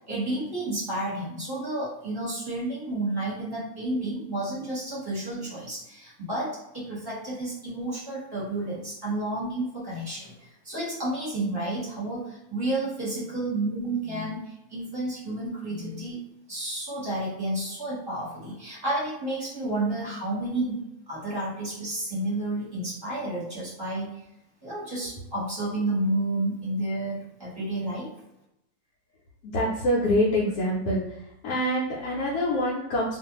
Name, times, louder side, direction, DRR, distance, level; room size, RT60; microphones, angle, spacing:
voice 1, 0.1-16.2 16.5-24.2 24.6-28.1, right 1 dB, 15° right, -8 dB, 1.1 m, -31 dB
voice 2, 29.4-31.0 31.4-33.2, equal, 75° left, -5 dB, 1.1 m, -25 dB
2.5 x 2.4 x 2.9 m, 0.84 s
omnidirectional pair, 1.7 m